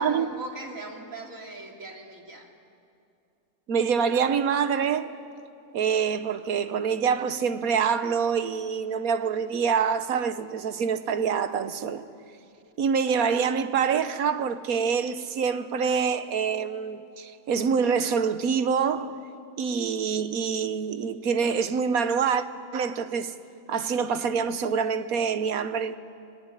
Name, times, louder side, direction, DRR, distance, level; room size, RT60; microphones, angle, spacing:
voice 1, 0.0-2.5, right 2 dB, 70° right, 3.2 m, -39 dB
voice 2, 3.7-5.1 5.7-12.0 12.8-19.1 19.6-22.4 22.7-23.3 23.7-25.9, right 6 dB, 85° right, 1.5 m, -26 dB
30.0 x 20.0 x 9.8 m
omnidirectional pair, 1.5 m